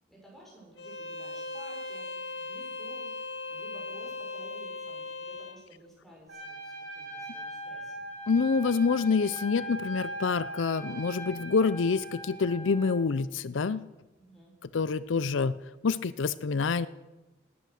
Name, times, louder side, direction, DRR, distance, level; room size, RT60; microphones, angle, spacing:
voice 1, 0.0-8.1 14.2-14.5, equal, ahead, -5 dB, 6.2 m, -53 dB
Bowed string instrument, 0.8-5.6, left 3 dB, 65° left, 1.1 m, -38 dB
Trumpet, 6.3-13.0, right 1 dB, 85° right, 6.2 m, -40 dB
voice 2, 8.3-13.8 14.7-15.6 15.8-16.9, left 5 dB, 80° left, 16 dB, 0.5 m, -27 dB
18.5 x 10.0 x 6.4 m, 1.1 s
head